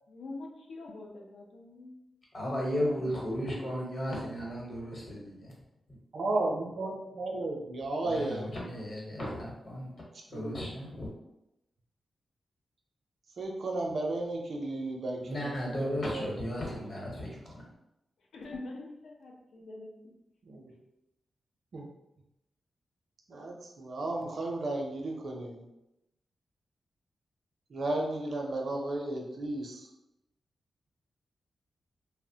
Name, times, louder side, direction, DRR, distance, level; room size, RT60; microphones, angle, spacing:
voice 1, 0.1-1.9 2.4-2.6 18.3-19.9, left 2 dB, 85° left, 0 dB, 0.5 m, -44 dB
voice 2, 2.3-5.5 8.0-9.9 10.3-11.1 15.2-17.3 17.5-17.6, equal, 45° left, -3 dB, 0.9 m, -35 dB
voice 3, 6.1-8.5 10.3-10.6 13.4-16.6 20.4-20.7 21.7-21.9 23.3-25.7 27.7-29.9, right 2 dB, 60° right, 1 dB, 0.5 m, -34 dB
2.8 x 2.0 x 2.7 m, 0.89 s
wide cardioid pair, 115°, 0 cm